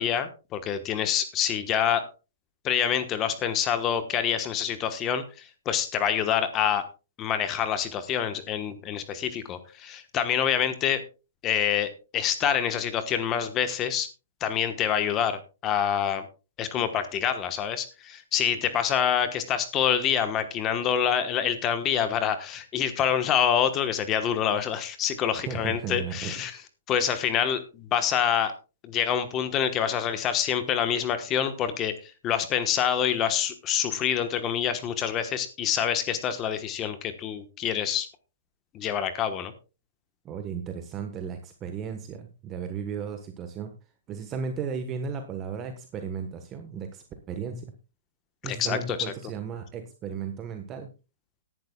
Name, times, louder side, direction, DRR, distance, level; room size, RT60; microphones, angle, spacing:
voice 1, 0.0-2.1 2.6-6.9 7.2-11.0 11.4-14.1 14.4-16.2 16.6-26.5 26.9-28.5 28.8-31.9 32.2-38.1 38.7-39.5 48.4-49.0, left 9 dB, 25° left, 10 dB, 1.2 m, -26 dB
voice 2, 25.4-26.3 40.2-43.7 44.1-47.7 48.4-50.9, right 6 dB, 20° right, 7 dB, 1.2 m, -35 dB
18.5 x 11.0 x 2.3 m, 0.30 s
hypercardioid pair, 150°, 0 cm